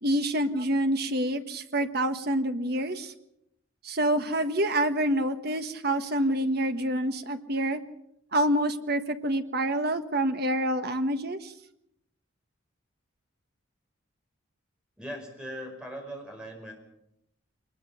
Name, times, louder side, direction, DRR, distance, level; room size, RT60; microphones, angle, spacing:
voice 1, 0.0-3.1 3.8-7.8 8.3-11.5, right 1 dB, 50° right, 8 dB, 1.4 m, -27 dB
voice 2, 15.0-16.7, equal, 5° right, 2 dB, 5.3 m, -39 dB
22.5 x 20.5 x 5.8 m, 0.79 s
head